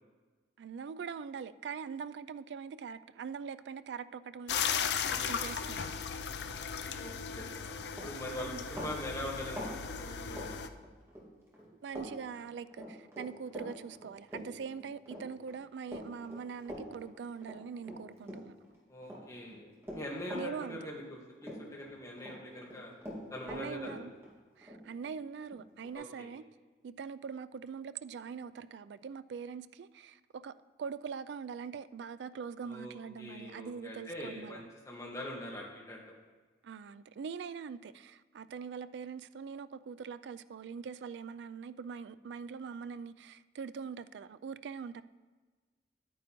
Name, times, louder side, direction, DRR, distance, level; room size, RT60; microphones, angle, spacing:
voice 1, 0.6-5.0 5.3-5.9 8.4-8.6 11.8-18.6 20.3-20.8 23.5-24.1 24.6-26.4 26.8-34.6 36.6-45.0, right 6 dB, 85° right, 0.3 m, -43 dB
sound 1, 4.5-10.7, left 7 dB, 80° left, 0.5 m, -36 dB
voice 2, 5.0-5.4 6.9-7.8 8.0-10.5 18.9-22.9 23.3-23.9 25.9-26.3 32.6-36.0, left 1 dB, 20° left, 1.6 m, -43 dB
Run, 7.6-7.7 7.9-11.3 11.5-12.1 12.3-18.7 19.0-21.2 21.4-22.4 22.6-25.9, equal, 15° right, 1.9 m, -45 dB
10.5 x 9.1 x 3.1 m
head